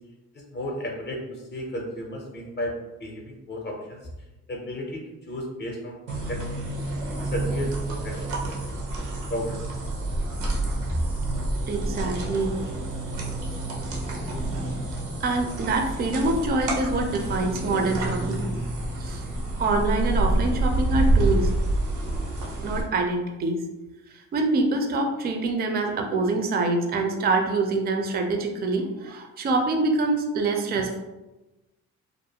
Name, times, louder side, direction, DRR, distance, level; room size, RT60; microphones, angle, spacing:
voice 1, 0.5-2.8 3.0-4.0 4.5-6.4 7.2-8.6 9.3-9.6, left 1 dB, 35° left, 0 dB, 0.6 m, -33 dB
sound 1, 6.1-22.8, right 1 dB, 90° right, 0.7 m, -28 dB
voice 2, 11.7-12.6 15.2-18.4 19.0-19.2 19.6-21.5 22.6-23.6 24.3-31.0, right 3 dB, 35° right, 3 dB, 0.4 m, -25 dB
2.4 x 2.1 x 2.7 m, 1.0 s
cardioid pair, 90°, 30 cm